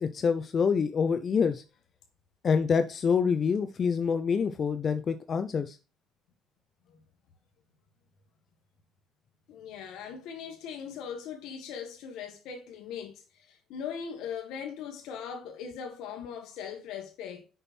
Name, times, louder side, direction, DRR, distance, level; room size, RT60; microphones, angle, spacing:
voice 1, 0.0-1.6 2.4-5.8, left 6 dB, 35° left, 0.5 m, -26 dB
voice 2, 9.5-17.5, left 7 dB, 70° left, 1.7 m, -40 dB
6.6 x 6.0 x 4.3 m
cardioid pair, 135°, 0 cm